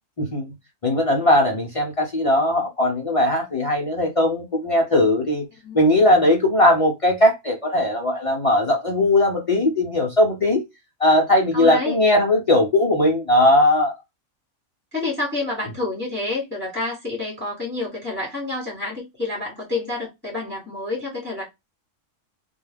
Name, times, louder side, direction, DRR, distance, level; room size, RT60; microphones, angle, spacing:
voice 1, 0.2-0.5 0.8-5.4 5.7-10.6 11.0-13.9, left 1 dB, 50° left, 0.4 m, -19 dB
voice 2, 11.5-12.0 14.9-21.4, left 2 dB, 10° left, 1.0 m, -28 dB
2.3 x 2.2 x 3.3 m
omnidirectional pair, 1.3 m